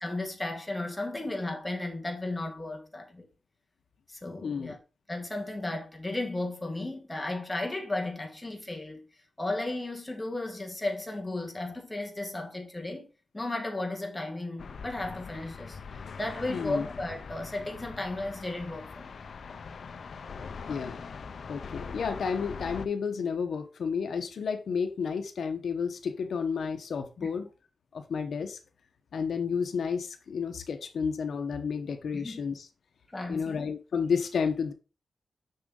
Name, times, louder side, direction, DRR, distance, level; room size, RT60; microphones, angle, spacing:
voice 1, 0.0-3.2 4.1-4.8 5.1-9.0 9.4-13.1 13.3-15.8 16.2-19.2 27.2-27.3 32.1-32.4 33.1-33.7, left 2 dB, 10° left, 1.4 m, -34 dB
voice 2, 4.4-4.7 16.5-16.9 20.7-21.0 21.5-27.5 27.9-28.6 29.1-32.7 33.3-34.7, left 6 dB, 70° left, 0.9 m, -31 dB
sound 1, 14.6-22.9, left 5 dB, 55° left, 0.5 m, -42 dB
6.6 x 6.3 x 3.7 m
wide cardioid pair, 155°, 0 cm